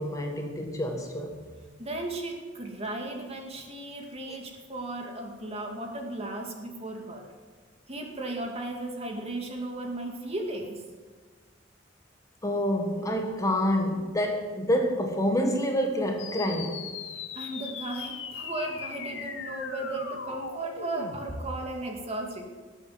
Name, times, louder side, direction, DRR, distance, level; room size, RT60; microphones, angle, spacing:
voice 1, 0.0-1.4 12.4-16.8, equal, 20° left, 3 dB, 1.6 m, -27 dB
voice 2, 1.8-7.3 7.9-10.8 17.3-22.5, right 2 dB, 35° right, 1 dB, 2.4 m, -35 dB
sound 1, 16.2-21.2, left 5 dB, 85° left, 1.9 m, -39 dB
18.0 x 8.7 x 7.7 m, 1.4 s
head